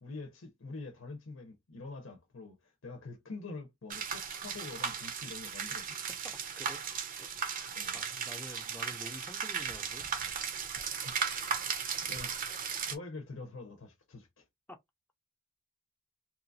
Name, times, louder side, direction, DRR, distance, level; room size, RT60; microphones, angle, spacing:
voice 1, 0.0-6.0 7.7-8.0 11.0-11.2 12.1-12.4 12.8-14.5, left 3 dB, 90° left, 0.8 m, -45 dB
sound 1, 3.9-12.9, right 6 dB, 45° right, 0.6 m, -36 dB
voice 2, 6.1-6.8 7.2-7.3 7.6-10.1 14.7-14.8, left 1 dB, 10° left, 0.5 m, -49 dB
2.8 x 2.4 x 2.6 m
head